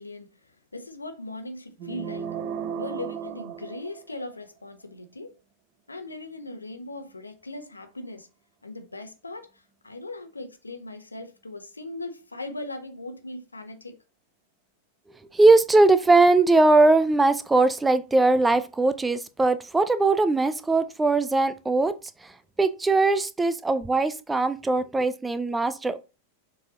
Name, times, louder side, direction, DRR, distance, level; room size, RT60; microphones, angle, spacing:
voice 1, 0.0-2.3 2.8-5.3 5.9-8.3 8.6-14.0, left 2 dB, 80° left, 1.1 m, -39 dB
sound 1, 1.8-4.4, right 7 dB, 40° right, 0.9 m, -35 dB
voice 2, 15.3-21.9 22.6-26.0, right 3 dB, 10° right, 0.6 m, -20 dB
6.9 x 4.6 x 3.8 m
figure-of-eight pair, 90°, 0 cm